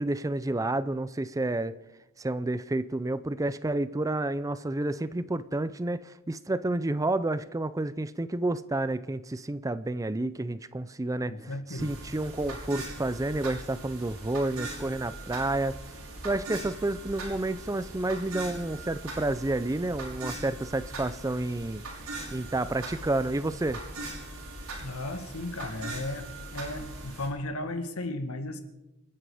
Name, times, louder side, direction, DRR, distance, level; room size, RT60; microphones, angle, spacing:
voice 1, 0.0-1.8 2.2-15.8 16.2-21.8 22.3-23.8, right 2 dB, 15° right, 15 dB, 0.5 m, -30 dB
voice 2, 11.2-11.9 24.8-28.6, left 1 dB, 75° left, 7 dB, 2.0 m, -35 dB
sound 1, 11.8-27.3, right 2 dB, 90° right, 5.8 m, -40 dB
28.5 x 10.0 x 5.0 m, 0.96 s
head